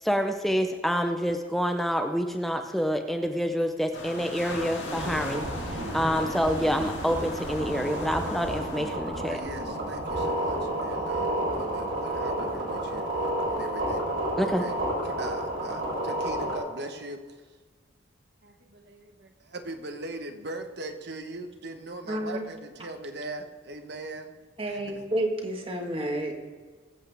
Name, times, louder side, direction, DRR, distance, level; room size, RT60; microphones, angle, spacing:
voice 1, 0.0-5.4 5.9-9.4 14.4-14.6, equal, ahead, 5 dB, 0.6 m, -27 dB
sound 1, 3.9-9.0, left 2 dB, 60° left, 2.2 m, -39 dB
sound 2, 4.8-16.6, right 1 dB, 75° right, 3.9 m, -31 dB
voice 2, 9.1-14.1 14.4-14.8 15.0-17.4 18.4-24.3 24.7-25.0, right 2 dB, 55° right, 6 dB, 1.2 m, -40 dB
voice 3, 22.1-22.4 24.6-26.3, right 1 dB, 30° right, 2 dB, 1.7 m, -30 dB
21.5 x 8.1 x 3.5 m, 1.4 s
head